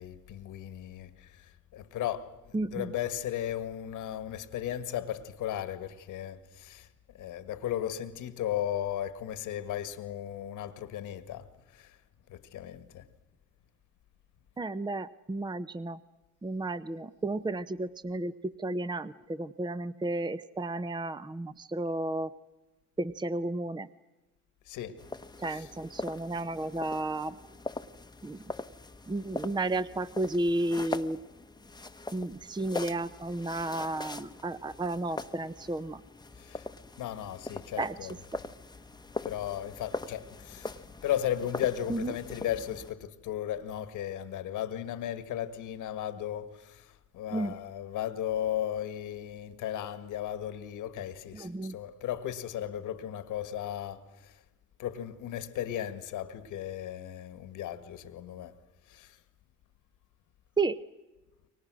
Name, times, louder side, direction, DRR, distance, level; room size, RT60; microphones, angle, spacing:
voice 1, 0.0-1.5 1.7-2.4 2.7-6.9 7.1-11.5 11.7-11.9 12.3-13.0 24.7-25.0 25.5-25.7 36.4-36.7 37.0-38.1 39.2-40.8 41.0-54.3 54.8-58.5 58.9-59.2, left 11 dB, 85° left, 1.8 m, -35 dB
voice 2, 2.5-2.9 14.6-16.0 16.4-22.3 23.0-23.9 25.4-27.4 28.2-28.4 29.1-31.2 32.1-36.0 37.8-37.9 38.3-38.4 41.9-42.1 47.3-47.6 51.3-51.8 60.6-60.8, right 2 dB, 15° right, 0.8 m, -32 dB
sound 1, 25.0-42.9, left 2 dB, 15° left, 1.0 m, -42 dB
29.5 x 23.5 x 6.3 m
cardioid pair, 90°, 30 cm